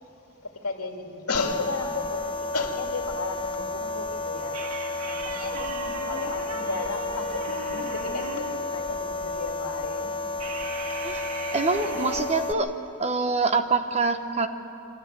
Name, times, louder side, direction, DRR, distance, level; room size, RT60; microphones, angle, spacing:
voice 1, 0.4-4.6 5.0-10.2 10.4-10.5 10.9-11.0, left 3 dB, 80° left, 2 dB, 2.1 m, -34 dB
sound 1, 1.3-12.5, left 2 dB, 25° left, 0.7 m, -32 dB
sound 2, 4.5-8.7 10.4-12.2, right 2 dB, 90° right, 2.1 m, -37 dB
voice 2, 11.5-12.7 13.0-14.5, right 4 dB, 30° right, 8 dB, 0.9 m, -25 dB
26.0 x 13.0 x 8.9 m, 3.0 s
head